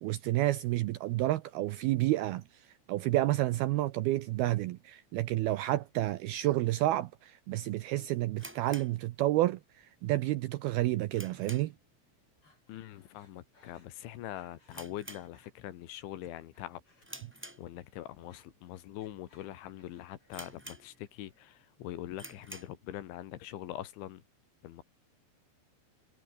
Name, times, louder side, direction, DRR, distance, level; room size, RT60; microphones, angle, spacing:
voice 1, 0.0-11.7, right 16 dB, 80° right, 2.3 m, -30 dB
sound 1, 8.4-9.7 10.0-10.1 10.6-11.9 12.2-12.5 12.8-12.9 13.6-13.9 14.1-14.2 14.7-15.8 16.2-16.5 17.0-18.1 18.7-18.8 19.4-19.5 19.7-19.8 20.3-21.3 21.6-21.7 22.1-22.8, right 1 dB, 5° right, 1.9 m, -49 dB
Breathing, 12.4-14.8 15.1-15.5 16.0-17.5 17.8-20.6 20.9-21.5, left 2 dB, 25° left, 8.6 m, -67 dB
voice 2, 12.7-16.8 17.6-24.2 24.6-24.8, left 13 dB, 85° left, 4.1 m, -43 dB
omnidirectional pair, 5.3 m